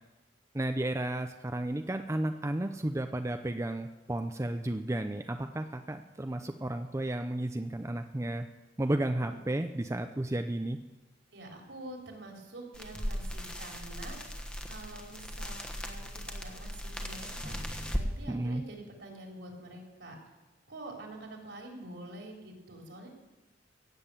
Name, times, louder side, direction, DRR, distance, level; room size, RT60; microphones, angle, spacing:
voice 1, 0.5-8.5 8.8-10.8 18.3-18.6, right 1 dB, 15° right, 7 dB, 0.6 m, -33 dB
voice 2, 11.3-17.6 17.9-20.2 20.7-23.1, right 2 dB, 70° right, 1 dB, 3.6 m, -47 dB
sound 1, 12.7-18.1, equal, 5° left, 1.3 m, -38 dB
16.0 x 7.7 x 8.4 m, 1.1 s
head